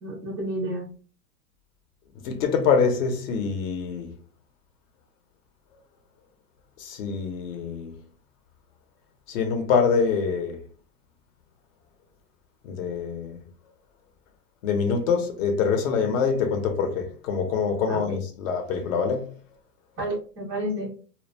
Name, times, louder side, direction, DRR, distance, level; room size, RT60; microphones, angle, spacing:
voice 1, 0.0-0.8 17.9-18.2 20.0-20.9, right 1 dB, 15° right, 0.3 m, -30 dB
voice 2, 2.2-4.1 6.8-7.9 9.3-10.6 12.6-13.4 14.6-19.3, left 5 dB, 55° left, 0.8 m, -25 dB
2.2 x 2.0 x 3.3 m
hypercardioid pair, 135°, 48 cm